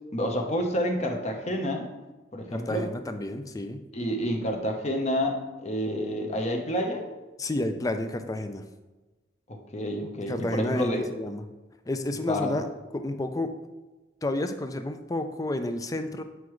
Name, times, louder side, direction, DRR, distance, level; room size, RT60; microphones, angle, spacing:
voice 1, 0.1-1.9 2.3-2.9 3.9-7.0 9.7-11.0 12.2-12.6, equal, 35° left, 3 dB, 0.9 m, -29 dB
voice 2, 2.5-3.8 7.4-8.6 10.3-11.5 11.9-12.7 12.9-13.5 14.2-16.2, left 1 dB, 20° left, 8 dB, 0.4 m, -30 dB
8.2 x 4.7 x 3.1 m, 1.1 s
head